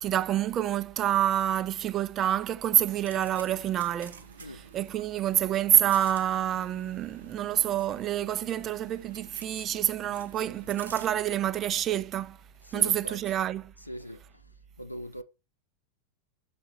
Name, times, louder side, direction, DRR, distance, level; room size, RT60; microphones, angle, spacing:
voice 1, 0.0-12.4 12.7-13.7, right 11 dB, 30° right, 0.4 m, -27 dB
sound 1, 2.8-11.1, right 5 dB, 70° right, 0.9 m, -49 dB
voice 2, 12.7-13.2 13.9-14.2 14.8-15.2, equal, 85° left, 0.6 m, -40 dB
6.6 x 4.1 x 4.0 m
figure-of-eight pair, 90°, 0 cm